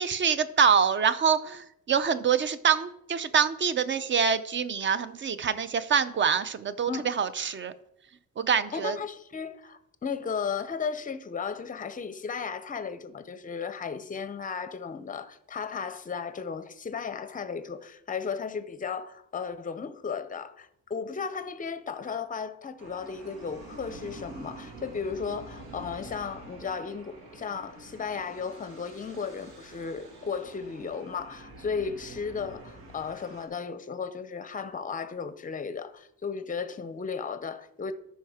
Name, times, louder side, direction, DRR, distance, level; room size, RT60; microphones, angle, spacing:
voice 1, 0.0-7.7 8.4-9.0, right 7 dB, 35° right, 0.5 m, -25 dB
voice 2, 8.7-37.9, left 6 dB, 25° left, 0.6 m, -35 dB
sound 1, 22.8-33.5, right 2 dB, 90° right, 2.1 m, -47 dB
13.0 x 5.6 x 4.9 m
cardioid pair, 150°, 36 cm